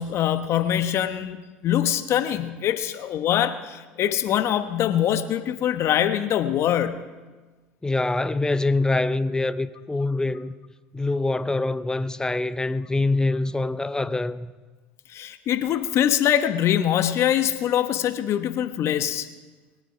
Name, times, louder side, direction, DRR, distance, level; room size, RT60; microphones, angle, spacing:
voice 1, 0.0-1.4 1.6-7.0 15.1-19.3, left 10 dB, 50° left, 1.1 m, -23 dB
voice 2, 7.8-10.5 10.9-14.5, left 2 dB, 10° left, 0.6 m, -24 dB
22.0 x 9.0 x 4.9 m
hypercardioid pair, 70°, 6 cm